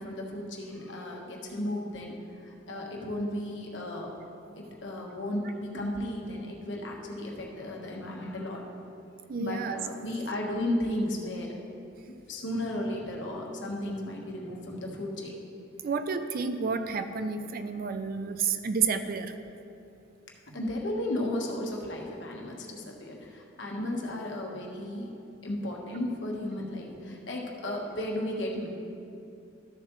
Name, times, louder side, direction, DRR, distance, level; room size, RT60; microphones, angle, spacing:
voice 1, 0.0-2.1 2.4-4.1 4.6-8.6 9.4-11.6 12.3-15.4 20.5-25.1 25.4-28.7, left 1 dB, 70° left, -1 dB, 1.2 m, -34 dB
voice 2, 9.3-9.8 15.8-19.3, right 5 dB, 50° right, 9 dB, 0.4 m, -30 dB
12.5 x 6.9 x 3.1 m, 2.6 s
head